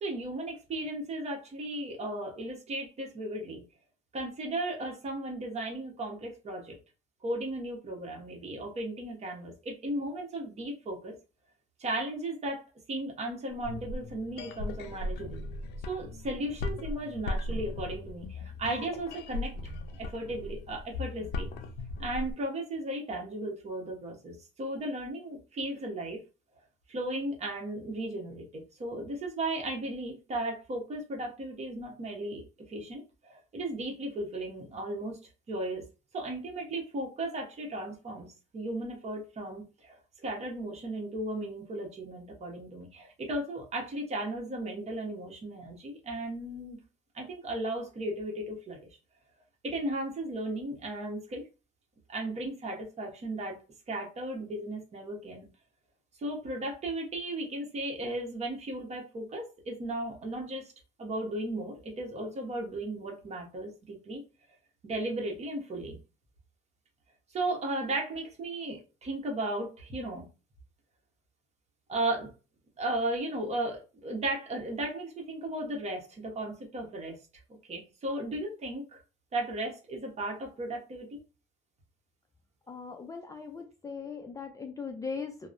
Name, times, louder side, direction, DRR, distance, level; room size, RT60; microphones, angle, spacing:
voice 1, 0.0-3.6 4.1-6.7 7.2-11.1 11.8-12.6 12.9-15.4 15.9-19.5 20.0-21.5 22.0-26.2 26.9-35.2 35.5-35.9 36.1-38.3 38.5-46.8 47.1-48.8 49.6-51.4 52.1-53.6 53.9-55.5 56.2-60.7 61.0-64.2 64.8-66.0 67.3-70.3 71.9-72.3 72.8-77.2 77.7-79.0 79.3-81.2, right 1 dB, 40° right, 1 dB, 1.0 m, -35 dB
sound 1, 13.5-22.3, left 2 dB, 80° left, 0.5 m, -37 dB
voice 2, 82.7-85.5, left 5 dB, 20° left, 4 dB, 0.4 m, -39 dB
2.9 x 2.0 x 2.5 m, 0.32 s
cardioid pair, 110°, 17 cm